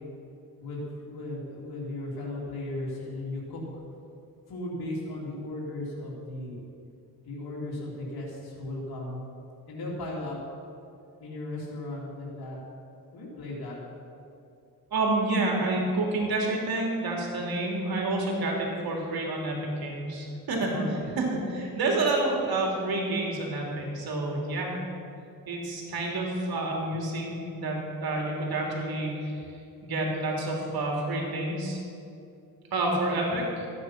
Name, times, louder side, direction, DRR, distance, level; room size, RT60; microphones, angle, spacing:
voice 1, 0.6-3.8 4.5-6.6 7.2-9.2 9.7-10.4 11.2-12.6 13.1-13.8 18.7-18.8 20.7-21.1, left 2 dB, 80° left, -5 dB, 3.3 m, -36 dB
voice 2, 14.9-20.7 21.2-24.7 25.5-29.4 29.8-31.8 32.7-33.7, right 2 dB, 75° right, -1 dB, 3.0 m, -29 dB
14.5 x 9.5 x 5.9 m, 2.6 s
cardioid pair, 90°, 37 cm